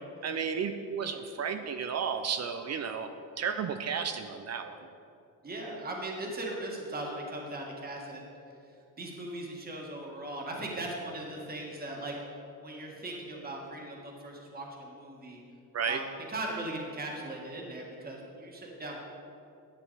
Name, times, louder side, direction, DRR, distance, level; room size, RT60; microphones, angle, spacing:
voice 1, 0.2-3.1 3.4-4.9 15.7-16.0, right 6 dB, 45° right, 8 dB, 0.5 m, -33 dB
voice 2, 5.4-8.3 9.0-12.1 12.6-15.4 15.9-19.0, right 1 dB, 25° right, -1 dB, 1.7 m, -39 dB
11.0 x 8.2 x 4.1 m, 2.7 s
cardioid pair, 120°, 36 cm